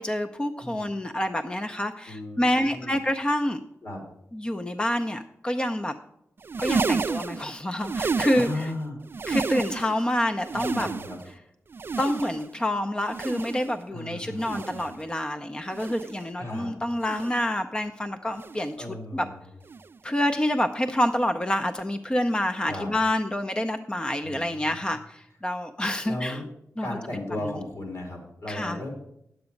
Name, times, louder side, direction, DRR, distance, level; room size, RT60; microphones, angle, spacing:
voice 1, 0.0-3.6 4.3-5.9 6.6-8.7 9.3-10.9 12.0-19.3 20.0-26.4 26.8-26.9 27.1-27.6 28.5-28.8, left 1 dB, 20° left, 7 dB, 0.6 m, -27 dB
voice 2, 2.1-3.0 3.8-4.0 8.3-9.0 10.5-11.2 13.9-14.9 16.4-16.7 18.7-19.4 22.6-22.9 24.2-24.6 26.0-26.4 26.8-28.9, left 1 dB, 75° left, 0 dB, 3.5 m, -36 dB
sound 1, 6.4-8.8 9.1-10.0 10.4-11.3 11.7-12.6 13.0-13.8 14.3-15.0 15.7-16.2 17.0-17.5 18.3-18.8 19.7-20.0 21.0-21.2 22.3-22.4, right 4 dB, 45° right, 0.3 m, -31 dB
9.5 x 8.0 x 5.2 m, 0.77 s
wide cardioid pair, 85°, 5 cm